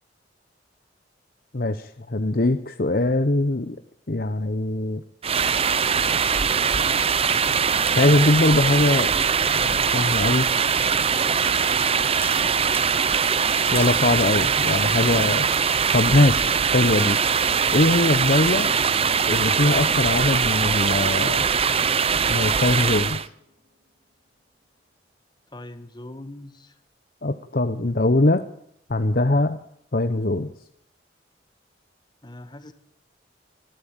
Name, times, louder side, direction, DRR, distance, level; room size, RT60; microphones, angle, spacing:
voice 1, 1.5-3.8 4.1-5.0 7.9-9.1 9.5-10.5 13.7-15.5 15.9-17.2 17.7-18.7 19.3-21.5 22.3-23.2 27.2-28.4 28.9-29.6 29.9-30.5, left 2 dB, 50° left, 9 dB, 0.9 m, -21 dB
sound 1, 5.2-23.3, right 6 dB, 30° right, 0.7 m, -22 dB
sound 2, 12.2-12.9 13.8-14.2 14.8-15.2, right 3 dB, 10° right, 1.9 m, -36 dB
sound 3, 23.5-24.3, left 1 dB, 55° right, 6.0 m, -50 dB
voice 2, 25.5-26.7 32.2-32.7, left 1 dB, 25° left, 10 dB, 1.6 m, -41 dB
24.5 x 14.0 x 9.0 m, 0.73 s
head